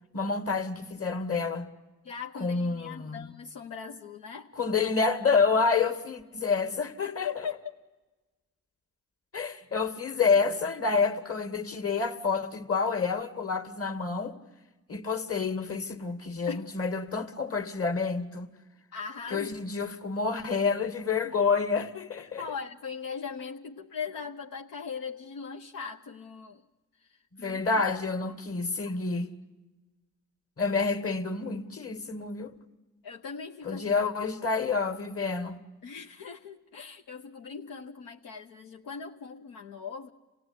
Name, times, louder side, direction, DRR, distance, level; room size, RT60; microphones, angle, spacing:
voice 1, 0.1-1.7 2.4-3.3 4.6-7.3 9.3-14.4 14.9-18.5 19.3-22.4 27.3-29.3 30.6-32.5 33.6-35.6, left 4 dB, 45° left, 2.3 m, -28 dB
voice 2, 2.0-4.5 7.2-7.5 16.5-16.7 18.9-19.6 22.4-26.6 27.0-27.6 28.2-28.4 28.8-29.0 33.0-34.0 35.8-40.1, left 6 dB, 80° left, 1.1 m, -40 dB
27.5 x 16.5 x 9.9 m
supercardioid pair, 45°, 33 cm